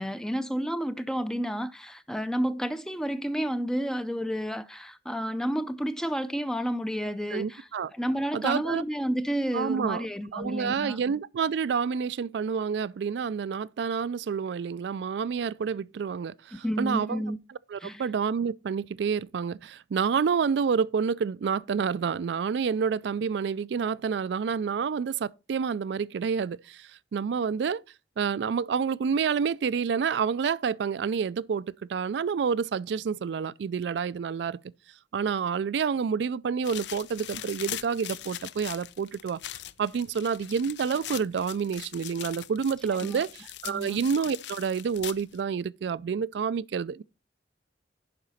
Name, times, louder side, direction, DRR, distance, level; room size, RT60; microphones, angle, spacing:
voice 1, 0.0-11.0 16.6-17.4 17.8-18.1 42.9-43.2 43.7-44.0, equal, 5° left, 0.4 m, -31 dB
voice 2, 7.3-7.9 8.3-8.8 9.5-10.1 10.3-17.2 17.7-27.8 28.2-34.6 35.1-39.4 39.8-47.0, right 6 dB, 70° right, 0.3 m, -28 dB
sound 1, 36.6-45.4, left 12 dB, 70° left, 0.5 m, -41 dB
11.0 x 4.9 x 4.1 m
head